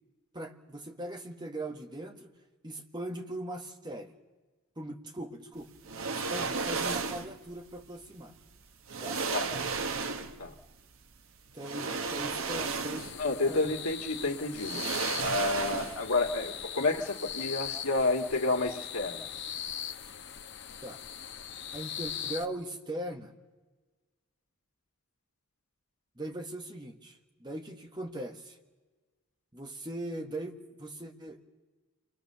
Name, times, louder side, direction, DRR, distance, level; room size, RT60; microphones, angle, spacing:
voice 1, 0.3-2.3 2.6-4.1 4.8-5.7 6.1-8.3 9.0-9.2 11.5-13.1 13.5-13.7 20.8-21.0 21.7-23.3 26.2-28.6 29.5-31.4, right 1 dB, 20° right, 4 dB, 1.5 m, -40 dB
sound 1, 5.9-7.4 8.4-8.5 8.9-10.5 11.6-13.3 13.6-13.8 14.6-16.2 16.5-16.6, right 4 dB, 65° right, 1.1 m, -34 dB
sound 2, 13.0-22.5, left 9 dB, 55° left, 1.0 m, -40 dB
voice 2, 13.2-19.3, left 2 dB, 80° left, 1 dB, 2.2 m, -30 dB
28.0 x 21.0 x 6.9 m, 1.3 s
head